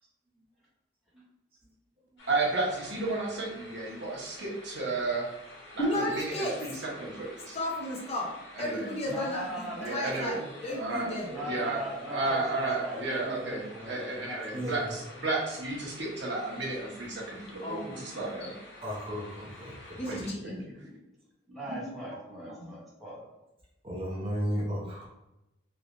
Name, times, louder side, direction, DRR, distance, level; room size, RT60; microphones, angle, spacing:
sound 1, 2.2-20.3, left 1 dB, 80° left, 1.3 m, -50 dB
voice 1, 2.3-5.3 6.2-7.6 8.6-8.9 9.8-10.4 10.7-17.8 18.0-18.5 20.1-20.6, right 2 dB, 65° right, -4 dB, 0.9 m, -33 dB
voice 2, 5.8-6.7 7.5-11.3 17.6-18.5 20.0-20.7, left 1 dB, 35° left, -2 dB, 0.6 m, -34 dB
voice 3, 9.0-10.2 11.3-14.9 20.0-20.1 21.5-23.3, right 1 dB, ahead, -8 dB, 1.1 m, -40 dB
voice 4, 18.8-20.2 21.8-21.9 22.4-22.5 23.8-25.1, equal, 30° right, -4 dB, 0.7 m, -34 dB
3.2 x 2.9 x 2.5 m, 0.94 s
head